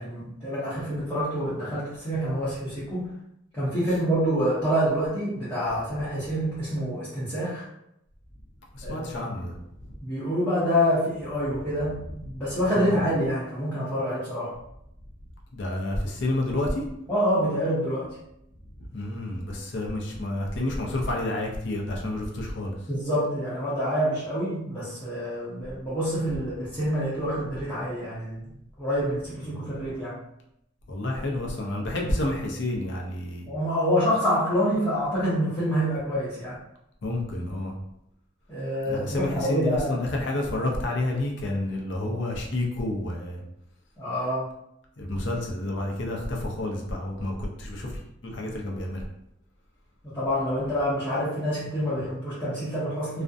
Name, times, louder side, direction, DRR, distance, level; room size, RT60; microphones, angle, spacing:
voice 1, 0.0-3.1 3.5-7.6 8.8-9.3 10.0-14.5 17.1-18.1 22.9-28.4 28.8-30.2 33.5-36.6 38.5-39.9 44.0-44.5 50.0-53.2, equal, 10° left, -12 dB, 0.7 m, -27 dB
voice 2, 8.7-9.5 12.8-12.9 15.5-16.8 18.8-22.7 29.5-29.6 30.9-33.5 37.0-37.7 38.8-43.4 45.0-49.0, left 1 dB, 65° left, 0 dB, 0.5 m, -29 dB
2.4 x 2.1 x 2.5 m, 0.79 s
head